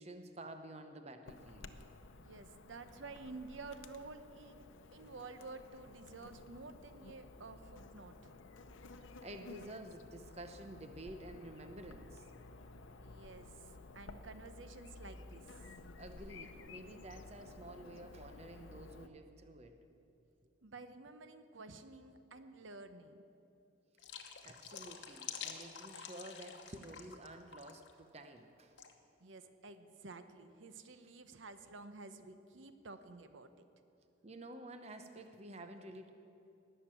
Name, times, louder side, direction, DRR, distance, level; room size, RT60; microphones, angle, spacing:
voice 1, 0.0-1.7 9.0-12.2 16.0-19.8 24.4-28.7 34.2-36.1, right 1 dB, 35° right, 7 dB, 0.7 m, -51 dB
Chirp tweet / Buzz, 1.2-19.1, left 3 dB, 80° left, 0.7 m, -54 dB
voice 2, 2.2-8.3 13.0-15.8 20.6-23.2 29.2-33.5, right 3 dB, 80° right, 10 dB, 0.8 m, -51 dB
sound 1, 24.0-27.3 27.5-27.9 28.8-28.9, left 7 dB, 65° left, 1.1 m, -48 dB
19.0 x 6.7 x 8.8 m, 2.8 s
head